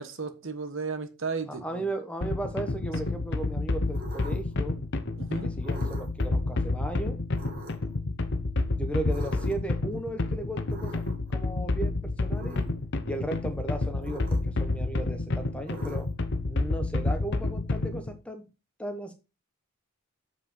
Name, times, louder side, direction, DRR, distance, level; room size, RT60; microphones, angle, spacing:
voice 1, 0.0-1.9 5.2-5.5, right 4 dB, 60° right, 8 dB, 1.2 m, -34 dB
voice 2, 1.5-4.7 5.4-7.2 8.7-12.6 13.1-16.1 16.5-18.5 18.8-19.1, right 2 dB, 5° left, 6 dB, 1.2 m, -36 dB
sound 1, 2.2-18.1, left 2 dB, 55° left, 0.9 m, -29 dB
sound 2, 3.9-4.6 5.6-6.3 7.3-7.9 9.1-9.8 10.7-11.3 12.3-12.8 14.0-14.7 15.7-16.3, right 1 dB, 40° right, 2.2 m, -44 dB
7.9 x 4.9 x 5.6 m, 0.29 s
head